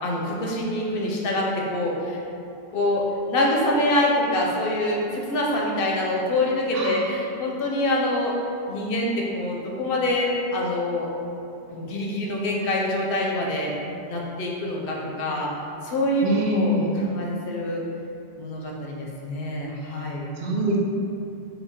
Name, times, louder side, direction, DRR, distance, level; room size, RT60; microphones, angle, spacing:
voice 1, 0.0-2.2 2.7-8.3 8.7-11.1 11.7-13.7 14.1-15.5 15.8-17.8 18.4-20.3, left 1 dB, 65° left, -2 dB, 0.7 m, -25 dB
voice 2, 16.2-16.9 20.4-20.8, equal, 70° right, -2 dB, 0.8 m, -24 dB
3.9 x 2.3 x 3.4 m, 2.6 s
omnidirectional pair, 1.1 m